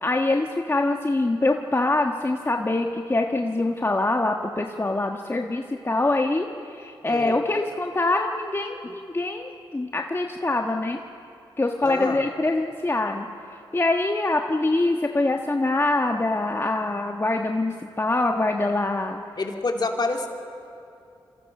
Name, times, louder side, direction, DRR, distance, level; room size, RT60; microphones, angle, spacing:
voice 1, 0.0-11.0 11.6-19.2, left 2 dB, 25° left, 3 dB, 1.4 m, -24 dB
voice 2, 7.0-7.4 11.8-12.2 19.4-20.3, left 3 dB, 50° left, 2 dB, 3.1 m, -27 dB
27.0 x 24.5 x 6.1 m, 2.7 s
cardioid pair, 50°, 10 cm